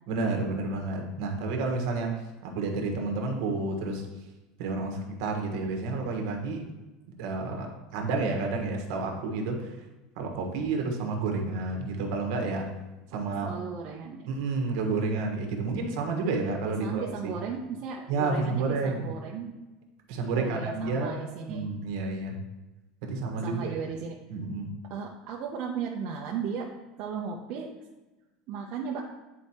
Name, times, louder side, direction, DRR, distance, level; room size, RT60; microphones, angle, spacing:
voice 1, 0.1-4.0 4.6-6.7 7.2-9.7 10.2-12.7 13.1-13.6 14.3-17.3 18.1-19.0 20.1-22.4 23.0-23.8 24.3-24.7, right 3 dB, 65° right, 2 dB, 1.2 m, -30 dB
voice 2, 13.1-14.3 16.6-19.5 20.3-21.7 23.4-24.2 24.9-26.7 27.0-27.7 28.5-29.0, right 6 dB, 45° right, -1 dB, 0.6 m, -36 dB
9.0 x 4.4 x 2.9 m, 1.1 s
cardioid pair, 165°, 3 cm